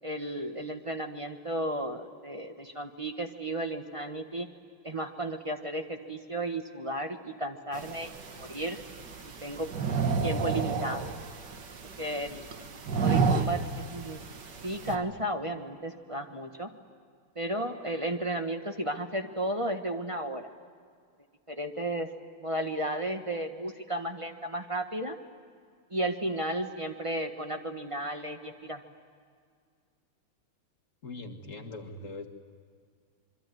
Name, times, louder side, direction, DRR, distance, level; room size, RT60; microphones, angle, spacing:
voice 1, 0.0-4.5 4.8-8.1 8.4-8.8 9.2-9.7 10.2-11.1 12.0-14.2 14.6-16.7 17.3-20.5 21.5-22.1 22.4-25.2 25.9-28.8, right 1 dB, 20° right, 5 dB, 1.0 m, -34 dB
sound 1, 7.7-15.0, right 5 dB, 55° right, 2.1 m, -31 dB
voice 2, 31.0-32.3, left 2 dB, 35° left, 4 dB, 2.2 m, -41 dB
25.5 x 24.0 x 9.3 m, 2.1 s
omnidirectional pair, 2.4 m